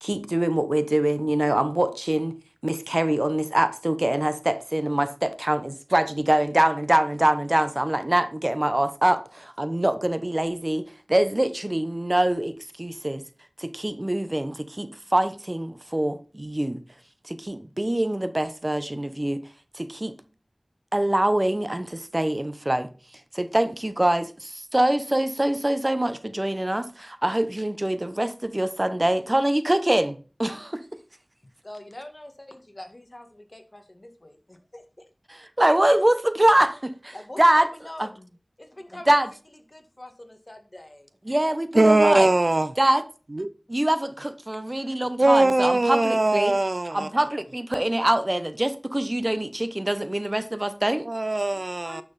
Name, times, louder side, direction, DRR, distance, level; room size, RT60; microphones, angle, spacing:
voice 1, 0.0-2.3 2.6-13.2 13.6-16.8 17.2-19.4 19.7-20.1 20.9-22.9 23.3-30.8 35.6-37.7 38.0-38.1 39.1-39.3 41.3-42.3 42.8-43.0 43.7-46.5 46.9-51.1, right 1 dB, 30° right, 0.9 m, -24 dB
voice 2, 31.6-35.0 37.1-39.2 39.7-41.1 51.8-52.0, left 1 dB, 40° left, 1.8 m, -43 dB
voice 3, 41.7-42.7 43.3-43.5 45.2-47.1 51.1-52.0, right 2 dB, 55° right, 0.6 m, -20 dB
10.0 x 6.1 x 4.1 m
wide cardioid pair, 40°, 0 cm